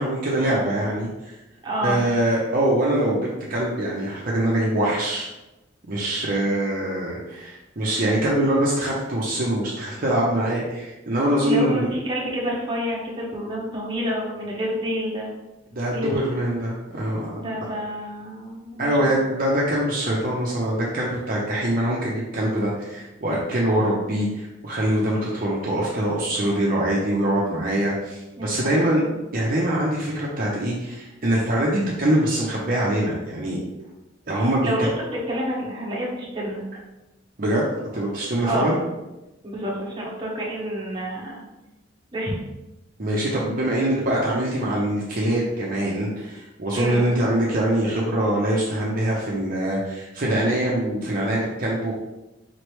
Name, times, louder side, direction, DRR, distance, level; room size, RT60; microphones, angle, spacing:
voice 1, 0.0-1.3 1.8-5.3 5.9-11.9 15.7-17.4 18.8-29.0 29.3-33.6 34.3-34.7 37.4-38.8 43.0-51.9, right 1 dB, 50° right, -5 dB, 0.7 m, -23 dB
voice 2, 1.6-2.0 6.1-6.4 11.4-15.3 15.9-16.2 17.4-19.1 28.4-29.2 34.4-36.6 38.4-38.8 39.4-41.4 42.1-42.4 46.7-47.1, equal, 25° right, -4 dB, 1.0 m, -29 dB
4.2 x 3.2 x 3.1 m, 1.0 s
head